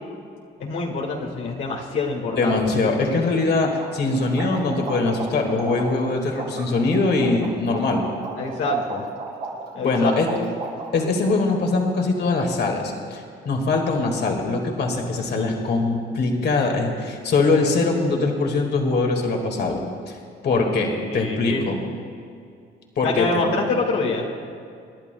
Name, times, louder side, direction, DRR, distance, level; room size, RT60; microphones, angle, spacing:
voice 1, 0.6-2.6 8.4-9.1 9.7-10.4 20.5-21.7 23.0-24.3, left 3 dB, 85° left, -2 dB, 1.8 m, -26 dB
voice 2, 2.3-8.1 9.8-10.3 10.9-20.2 20.4-21.8 23.0-23.3, left 3 dB, 55° left, 1 dB, 1.8 m, -22 dB
sound 1, 3.0-3.1 3.4-3.5 3.8-11.0, right 3 dB, 80° right, 3.3 m, -34 dB
27.5 x 11.0 x 2.2 m, 2.4 s
cardioid pair, 90°, 20 cm